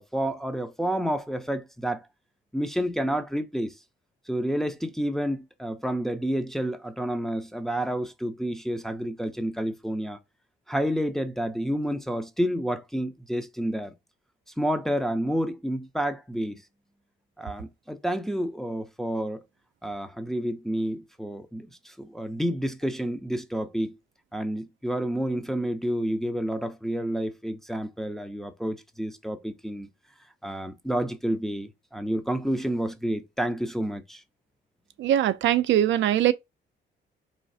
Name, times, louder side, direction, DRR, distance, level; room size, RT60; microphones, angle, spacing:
voice 1, 0.0-2.1 2.5-3.8 4.3-10.2 10.7-13.9 14.6-16.6 17.4-19.4 19.8-24.0 24.3-29.9 30.4-34.2, equal, ahead, 0.5 m, -29 dB
voice 2, 35.0-36.3, right 12 dB, 70° right, 0.4 m, -21 dB
4.0 x 3.1 x 2.6 m
cardioid pair, 90°, 20 cm